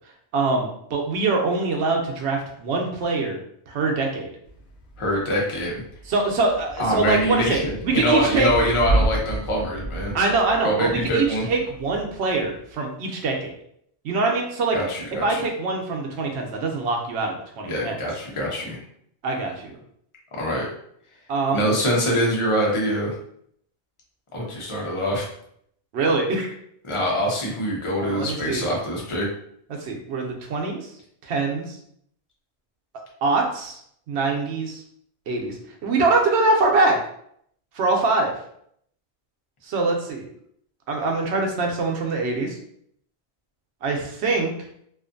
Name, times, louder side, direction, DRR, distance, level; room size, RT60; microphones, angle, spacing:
voice 1, 0.3-3.4 3.7-4.3 6.1-8.5 10.1-13.5 14.0-14.8 15.2-18.0 19.2-19.8 21.3-21.7 25.9-26.5 28.0-28.7 29.7-30.9 31.2-31.8 33.2-33.8 34.1-34.8 35.3-35.6 35.8-37.0 37.7-38.3 39.6-40.3 40.9-42.6 43.8-44.5, right 3 dB, 85° right, 1 dB, 0.9 m, -23 dB
Thunder / Rain, 4.5-12.7, right 1 dB, 85° left, 0.8 m, -31 dB
voice 2, 5.0-5.8 6.8-10.1 10.6-11.5 14.7-15.5 17.6-18.8 20.4-20.7 21.5-23.1 24.3-25.3 26.8-29.3, equal, 35° left, -3 dB, 0.7 m, -24 dB
2.5 x 2.5 x 2.5 m, 0.69 s
omnidirectional pair, 1.1 m